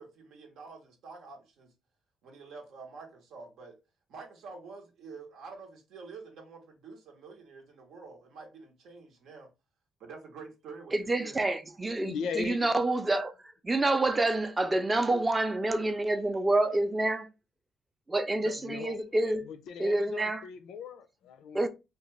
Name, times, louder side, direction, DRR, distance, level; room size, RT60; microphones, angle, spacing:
voice 1, 0.0-1.7 2.2-3.8 4.1-9.5 10.0-11.4 11.7-11.8 18.3-18.6, right 4 dB, 80° right, 0.8 m, -48 dB
voice 2, 10.9-13.3 13.6-17.3 18.1-19.5 19.8-20.4 21.5-21.7, right 2 dB, 20° right, 0.5 m, -28 dB
voice 3, 12.0-12.7 18.6-21.7, left 6 dB, 80° left, 0.4 m, -39 dB
2.5 x 2.3 x 3.0 m
cardioid pair, 90°, 0 cm